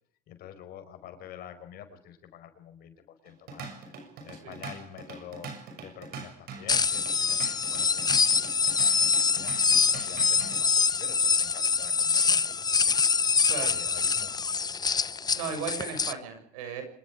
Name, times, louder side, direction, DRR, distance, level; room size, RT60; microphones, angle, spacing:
voice 1, 0.3-5.5 5.8-8.2 9.3-9.5 9.9-12.5 12.8-15.0, left 9 dB, 65° left, 9 dB, 4.9 m, -47 dB
Drum kit / Drum, 3.3-10.6, right 5 dB, 65° right, 6.6 m, -43 dB
sound 1, 6.7-16.1, left 5 dB, 25° left, 0.8 m, -25 dB
voice 2, 15.3-16.8, right 7 dB, 90° right, 7 dB, 6.6 m, -35 dB
25.5 x 22.5 x 5.0 m, 0.64 s
supercardioid pair, 85°, 17 cm